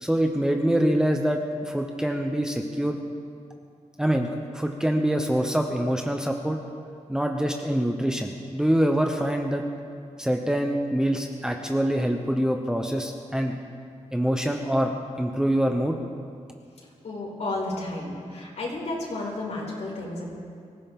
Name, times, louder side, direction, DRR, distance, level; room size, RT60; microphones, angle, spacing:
voice 1, 0.0-3.0 4.0-6.6 7.1-9.6 10.2-13.6 14.1-16.0, equal, 5° right, 2 dB, 0.9 m, -25 dB
voice 2, 17.0-20.3, left 2 dB, 65° left, -3 dB, 5.0 m, -32 dB
24.5 x 15.5 x 3.7 m, 2.3 s
wide cardioid pair, 150°, 13 cm